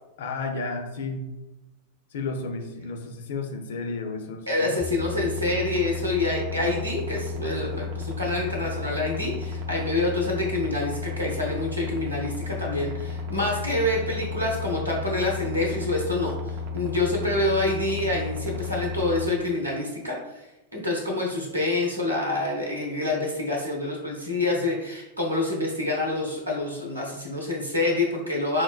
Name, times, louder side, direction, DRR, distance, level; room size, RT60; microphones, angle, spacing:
voice 1, 0.2-1.3 2.1-4.8, left 3 dB, 60° left, 5 dB, 0.4 m, -32 dB
voice 2, 4.5-20.2 20.7-28.6, left 2 dB, 85° right, -1 dB, 0.7 m, -27 dB
sound 1, 4.8-19.3, left 5 dB, 45° right, 0.4 m, -33 dB
4.4 x 2.1 x 2.3 m, 0.98 s
figure-of-eight pair, 90°, 0 cm